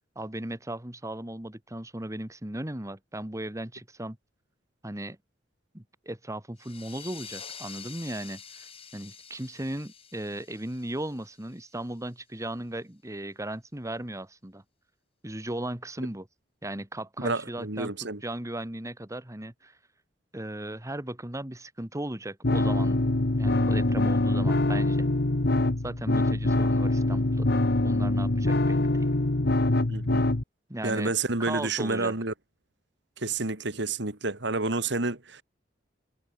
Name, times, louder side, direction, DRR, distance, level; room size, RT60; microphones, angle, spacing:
voice 1, 0.1-4.2 4.8-5.2 5.7-14.6 15.2-16.3 16.6-17.9 18.2-19.8 20.3-23.0 23.4-25.1 25.8-29.1 30.7-31.1 31.4-32.1, right 1 dB, 15° right, 1.7 m, -37 dB
sound 1, 6.6-11.9, left 7 dB, 30° left, 7.7 m, -47 dB
voice 2, 17.2-18.2 29.9-30.2 30.8-32.3 33.2-35.4, right 3 dB, 65° right, 2.6 m, -29 dB
sound 2, 22.4-30.4, left 2 dB, 55° left, 1.3 m, -24 dB
head